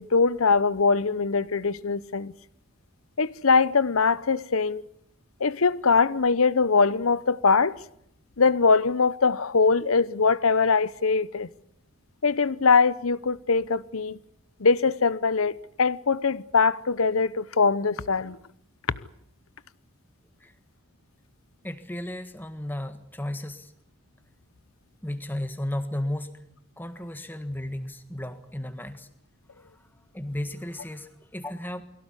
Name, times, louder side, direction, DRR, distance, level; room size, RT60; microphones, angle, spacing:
voice 1, 0.0-2.3 3.2-4.8 5.4-7.7 8.4-11.5 12.2-14.2 14.6-15.5 15.8-18.4, left 4 dB, 90° left, 0.9 m, -22 dB
voice 2, 21.6-23.7 25.0-26.4 26.8-29.1 29.5-29.8 30.1-31.8, left 1 dB, 10° left, 1.6 m, -34 dB
23.5 x 17.0 x 9.9 m
head